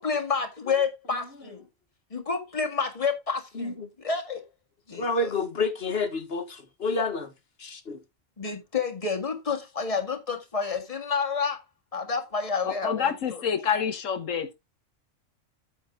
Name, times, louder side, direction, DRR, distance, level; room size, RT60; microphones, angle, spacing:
voice 1, 0.0-1.6 2.1-4.4 4.9-5.3 8.4-11.6 11.9-13.4, left 5 dB, 25° left, 1.9 m, -29 dB
voice 2, 3.5-3.9 4.9-7.3 7.6-8.0, left 3 dB, 55° left, 1.8 m, -29 dB
voice 3, 12.6-14.5, left 7 dB, 85° left, 1.5 m, -27 dB
8.7 x 7.4 x 3.7 m
omnidirectional pair, 1.3 m